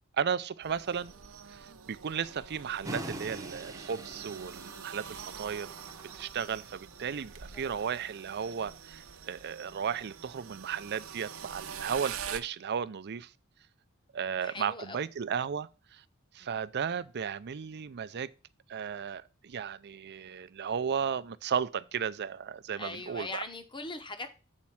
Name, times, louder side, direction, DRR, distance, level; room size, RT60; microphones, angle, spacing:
voice 1, 0.2-1.1 1.5-5.7 6.1-13.3 14.1-16.0 16.3-18.3 18.7-23.4, right 7 dB, 55° right, 0.5 m, -35 dB
sound 1, 0.6-12.4, right 7 dB, 80° right, 0.8 m, -45 dB
sound 2, 2.8-8.0, right 1 dB, 15° right, 0.8 m, -44 dB
voice 2, 14.4-15.1 16.4-16.5 22.8-24.3, left 2 dB, 25° left, 1.0 m, -41 dB
7.4 x 4.4 x 5.7 m
head